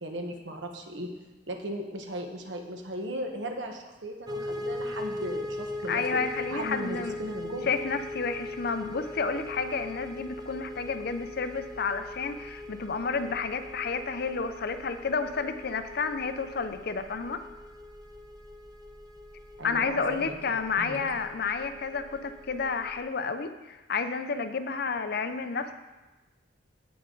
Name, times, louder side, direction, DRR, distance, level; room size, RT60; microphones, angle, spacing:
voice 1, 0.0-1.1 1.5-6.0 6.5-7.8 19.6-21.0, right 1 dB, 80° right, 3 dB, 1.3 m, -37 dB
sound 1, 4.3-23.0, left 1 dB, 20° right, 0.7 m, -40 dB
voice 2, 5.9-7.2 7.6-17.4 19.6-25.7, left 5 dB, 60° left, 9 dB, 0.6 m, -31 dB
16.0 x 5.6 x 3.9 m, 1.1 s
head